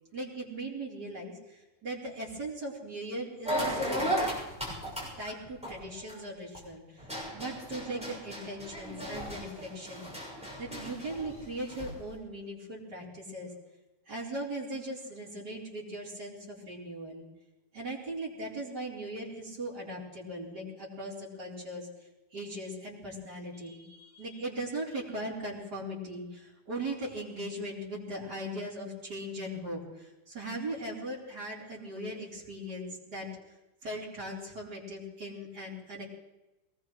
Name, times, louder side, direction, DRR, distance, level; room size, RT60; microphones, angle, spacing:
voice 1, 0.1-4.1 5.2-7.1 7.3-10.1 10.6-13.5 14.1-17.2 17.7-21.9 22.3-33.3 33.8-36.0, right 1 dB, 70° right, -6 dB, 4.9 m, -39 dB
sound 1, 3.5-6.6 7.0-12.0, equal, 5° right, 6.6 m, -35 dB
22.5 x 19.5 x 3.3 m, 1.0 s
omnidirectional pair, 1.8 m